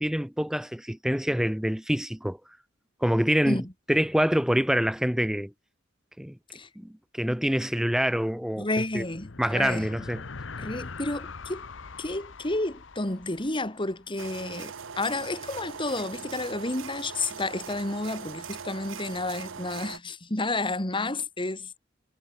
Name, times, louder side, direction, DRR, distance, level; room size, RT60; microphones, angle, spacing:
voice 1, 0.0-2.4 3.0-3.6 3.9-5.5 6.2-6.4 6.8-8.7 8.9-9.1 9.4-10.2, equal, 5° right, 0.7 m, -26 dB
voice 2, 8.6-9.9 10.6-11.7 12.0-21.8, left 2 dB, 25° left, 2.6 m, -31 dB
sound 1, 8.7-14.4, left 4 dB, 75° left, 1.0 m, -42 dB
sound 2, 14.2-20.0, right 6 dB, 85° right, 1.0 m, -40 dB
head